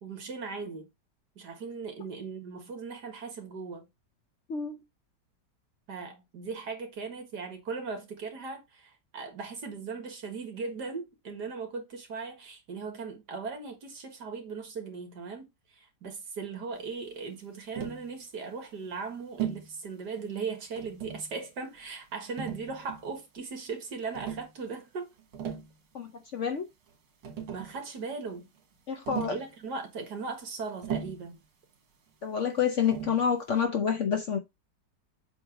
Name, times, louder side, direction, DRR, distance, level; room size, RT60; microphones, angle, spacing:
voice 1, 0.0-0.9 1.4-3.9 5.9-25.1 27.5-28.5 29.3-31.4, right 4 dB, 65° right, 2.2 m, -38 dB
voice 2, 4.5-4.8 25.9-26.7 28.9-29.4 32.2-34.4, left 7 dB, 55° left, 0.9 m, -28 dB
Tap, 17.7-18.1 19.4-19.7 20.8-21.3 22.4-23.1 24.1-24.5 25.2-25.7 26.9-27.0 27.2-27.8 29.1-29.5 30.8-31.3 32.9-33.2, right 9 dB, 85° right, 2.1 m, -36 dB
7.8 x 2.9 x 5.0 m
omnidirectional pair, 1.9 m